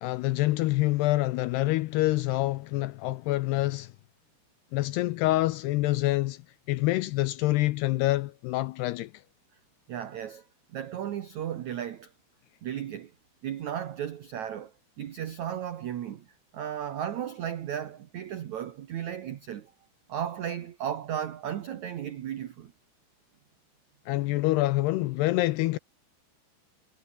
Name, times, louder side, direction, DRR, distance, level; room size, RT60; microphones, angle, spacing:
voice 1, 0.0-3.9 4.7-6.4 6.7-9.1 24.1-25.8, left 18 dB, 85° left, 2.5 m, -26 dB
voice 2, 9.9-10.4 10.7-12.1 12.6-13.1 13.4-16.3 16.5-19.7 20.1-22.7, right 10 dB, 80° right, 1.6 m, -35 dB
omnidirectional pair, 5.3 m